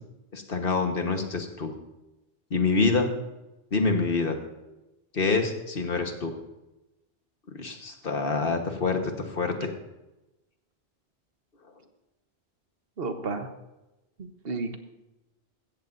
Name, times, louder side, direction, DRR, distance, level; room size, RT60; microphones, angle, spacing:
voice 1, 0.3-1.7 2.5-3.1 3.7-4.4 5.1-6.3 7.6-9.7, left 4 dB, 60° left, 5 dB, 1.5 m, -26 dB
voice 2, 13.0-13.5 14.2-14.8, right 3 dB, 65° right, 7 dB, 1.3 m, -32 dB
16.0 x 14.0 x 2.6 m, 1.0 s
omnidirectional pair, 1.1 m